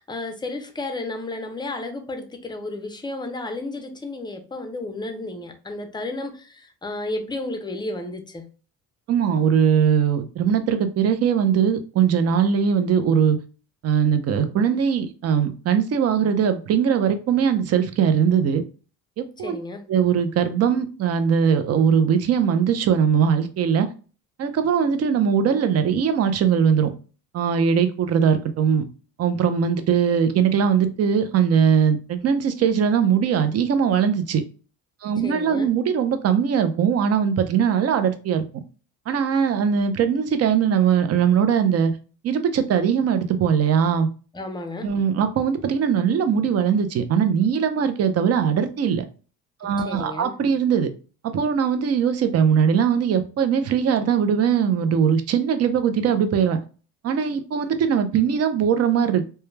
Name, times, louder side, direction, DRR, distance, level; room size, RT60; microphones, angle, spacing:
voice 1, 0.0-8.5 19.4-19.8 35.2-35.7 44.3-44.9 49.9-50.3, left 2 dB, 10° left, 0.5 m, -32 dB
voice 2, 9.1-13.4 13.8-18.6 19.2-19.6 19.9-23.9 24.4-26.9 27.3-28.8 29.2-34.4 35.0-38.4 39.1-41.9 42.2-44.1 44.8-49.0 49.6-50.9 51.3-56.6 57.0-59.2, right 7 dB, 40° right, 0.5 m, -20 dB
2.2 x 2.2 x 3.1 m
cardioid pair, 95°, 37 cm